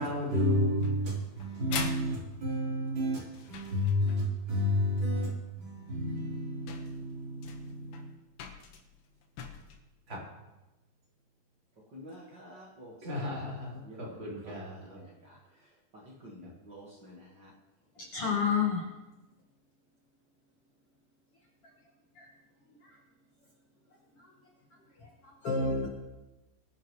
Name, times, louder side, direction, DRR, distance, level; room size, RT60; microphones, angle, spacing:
voice 1, 0.0-8.1 10.1-10.2 13.0-15.0, left 1 dB, 30° right, 4.4 m, -32 dB
sound 1, 0.8-4.4 5.8-5.9 6.4-6.5 6.7-9.8, left 7 dB, 85° left, 3.3 m, -43 dB
voice 2, 11.9-13.3 13.8-15.4 15.9-17.5, equal, 45° right, 1.5 m, -50 dB
voice 3, 18.1-18.8 22.2-22.3 25.2-25.9, left 5 dB, 55° left, 1.7 m, -29 dB
23.0 x 10.5 x 3.2 m
omnidirectional pair, 4.5 m